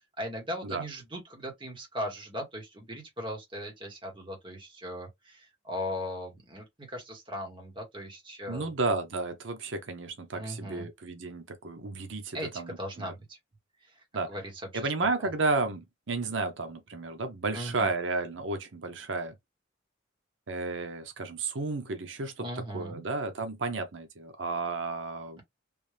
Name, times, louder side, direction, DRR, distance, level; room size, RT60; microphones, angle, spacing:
voice 1, 0.2-8.7 10.3-10.9 12.3-13.4 13.8-14.0 14.3-15.3 17.5-17.9 22.4-23.0, equal, 25° right, 1.5 m, -38 dB
voice 2, 8.5-13.1 14.1-14.3 14.7-19.3 20.5-22.5 22.7-25.4, right 3 dB, 90° right, 0.8 m, -32 dB
3.5 x 2.6 x 3.3 m
head